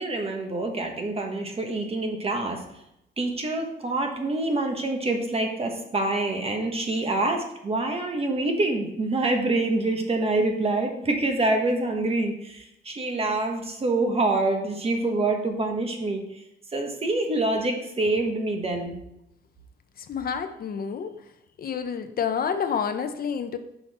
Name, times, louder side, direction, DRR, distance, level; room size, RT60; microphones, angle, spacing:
voice 1, 0.0-2.6 3.2-16.4 16.7-19.0, right 2 dB, 30° right, 3 dB, 1.2 m, -26 dB
voice 2, 20.0-21.1 21.6-23.6, left 7 dB, 55° left, 9 dB, 0.6 m, -29 dB
6.2 x 5.7 x 4.2 m, 0.81 s
cardioid pair, 120°, 19 cm